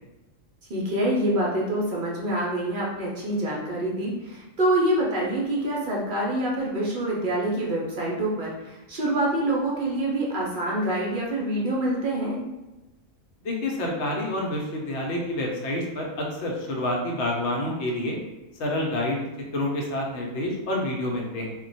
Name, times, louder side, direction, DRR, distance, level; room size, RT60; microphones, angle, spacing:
voice 1, 0.7-12.4, right 1 dB, 55° right, -4 dB, 0.6 m, -26 dB
voice 2, 13.4-18.2 18.6-19.3 19.5-21.5, left 1 dB, 65° left, -1 dB, 0.9 m, -28 dB
2.2 x 2.2 x 3.9 m, 1.0 s
omnidirectional pair, 1.4 m